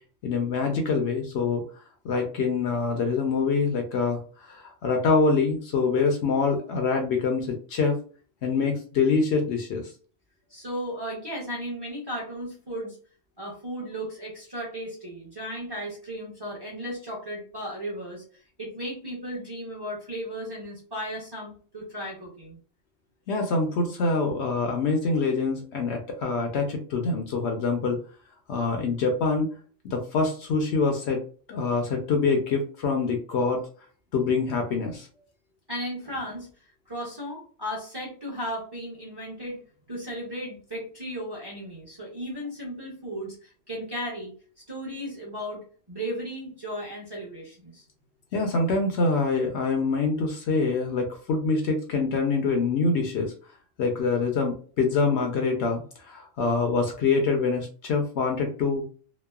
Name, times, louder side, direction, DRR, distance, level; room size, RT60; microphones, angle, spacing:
voice 1, 0.2-1.6 2.0-8.0 8.4-9.9 23.3-28.0 28.5-29.5 29.8-31.2 31.5-33.6 34.1-35.1 48.3-53.3 53.8-55.8 56.1-58.8, left 4 dB, 65° left, 3 dB, 0.7 m, -25 dB
voice 2, 10.5-13.0 13.4-22.6 35.7-39.6 39.9-44.3 44.7-47.8, equal, 25° right, -4 dB, 0.7 m, -35 dB
3.0 x 2.0 x 2.2 m, 0.40 s
omnidirectional pair, 1.3 m